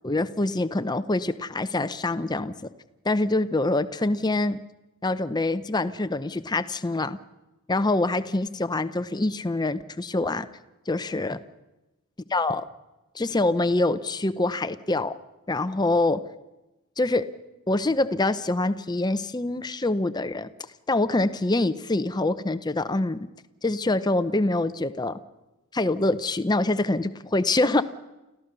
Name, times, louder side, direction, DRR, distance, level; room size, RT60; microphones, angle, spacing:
voice 1, 0.0-2.7 3.0-4.6 5.0-7.2 7.7-10.5 10.9-11.4 12.3-12.6 13.1-15.2 15.5-16.2 17.0-17.3 17.7-20.5 20.9-23.2 23.6-25.2 25.7-27.8, left 2 dB, 20° left, 12 dB, 0.7 m, -25 dB
29.5 x 14.5 x 6.8 m, 1.0 s
head